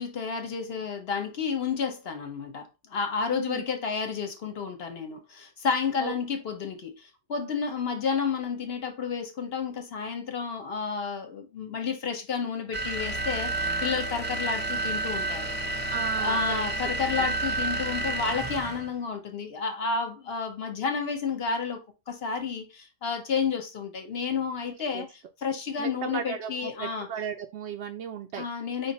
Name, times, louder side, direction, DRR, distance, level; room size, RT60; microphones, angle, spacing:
voice 1, 0.0-15.8 16.2-21.8 22.1-27.1 28.4-28.9, left 5 dB, 50° left, 0.9 m, -31 dB
voice 2, 3.3-3.6 6.0-6.1 15.9-16.4 24.7-25.1 25.8-28.4, right 8 dB, 65° right, 0.6 m, -36 dB
sound 1, 12.7-18.9, right 2 dB, 15° right, 0.4 m, -30 dB
5.0 x 2.6 x 4.1 m
omnidirectional pair, 1.6 m